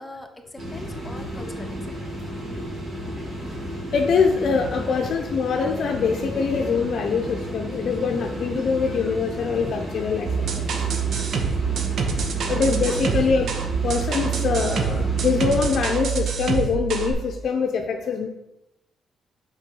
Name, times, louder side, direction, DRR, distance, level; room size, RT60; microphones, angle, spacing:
voice 1, 0.0-1.8 12.5-13.0, left 1 dB, 15° left, 5 dB, 0.9 m, -41 dB
sound 1, 0.6-15.8, equal, 40° right, 2.6 m, -33 dB
voice 2, 3.9-10.6 12.4-13.5 13.8-18.3, left 5 dB, 65° left, 3 dB, 0.6 m, -24 dB
sound 2, 10.3-17.1, right 7 dB, 65° right, 0.9 m, -26 dB
5.4 x 4.6 x 5.4 m, 0.88 s
cardioid pair, 90°, 0 cm